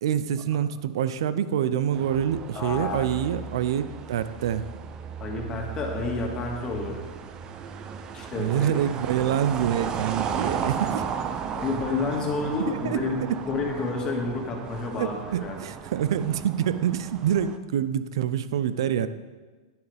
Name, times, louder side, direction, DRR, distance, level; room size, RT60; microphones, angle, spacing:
voice 1, 0.0-4.6 8.4-11.0 12.7-13.4 15.0-19.1, right 9 dB, 80° right, 13 dB, 0.6 m, -26 dB
sound 1, 1.9-17.6, right 7 dB, 30° right, 0.6 m, -35 dB
voice 2, 2.5-3.1 5.2-7.0 8.1-8.7 11.5-13.2 13.5-15.6, left 3 dB, 25° left, 0 dB, 2.0 m, -30 dB
10.5 x 9.7 x 3.5 m, 1.3 s
supercardioid pair, 140°, 3 cm